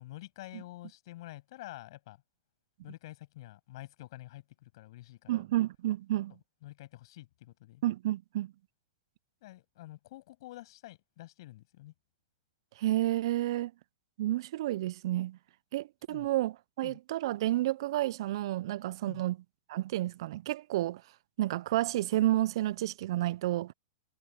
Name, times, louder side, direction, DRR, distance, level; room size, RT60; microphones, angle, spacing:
voice 1, 0.0-2.2 2.8-5.4 6.6-7.8 9.4-11.9 16.1-16.3 16.8-17.0 19.1-19.2, left 17 dB, 60° left, 7.5 m, -48 dB
voice 2, 5.3-6.3 7.8-8.5 12.8-13.7 14.2-15.4 15.7-19.4 19.7-21.0 21.4-23.7, right 15 dB, 65° right, 0.4 m, -30 dB
hypercardioid pair, 120°, 3 cm